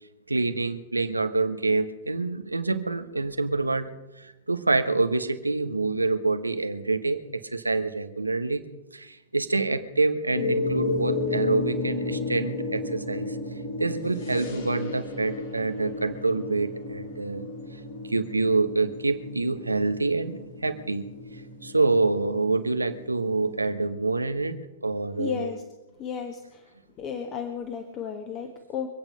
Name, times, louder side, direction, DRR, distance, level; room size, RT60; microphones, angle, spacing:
voice 1, 0.3-3.9 4.2-8.6 8.9-13.4 13.8-17.5 18.1-21.1 21.6-25.5, right 3 dB, 85° right, 9 dB, 1.1 m, -26 dB
sound 1, 10.3-23.7, left 2 dB, 60° left, 4.0 m, -33 dB
voice 2, 25.2-25.6 26.0-26.7 27.0-28.9, left 7 dB, 35° left, 4 dB, 1.6 m, -34 dB
24.5 x 8.9 x 5.7 m, 1.0 s
figure-of-eight pair, 100°, 0 cm